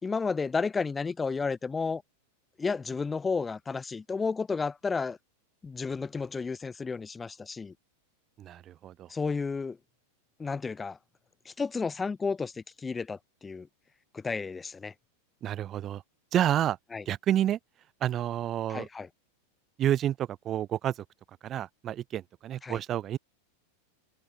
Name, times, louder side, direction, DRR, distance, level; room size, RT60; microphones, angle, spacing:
voice 1, 0.0-2.0 2.6-5.2 5.6-7.7 9.1-9.8 10.4-11.0 11.4-13.7 14.1-14.9 16.9-17.0 18.7-19.1 22.6-22.8, left 4 dB, 10° left, 1.7 m, -32 dB
voice 2, 8.4-9.1 15.4-16.0 16.3-16.8 17.1-17.6 18.0-18.9 19.8-21.0 21.4-23.2, right 11 dB, 25° right, 0.8 m, -29 dB
supercardioid pair, 160°, 0 cm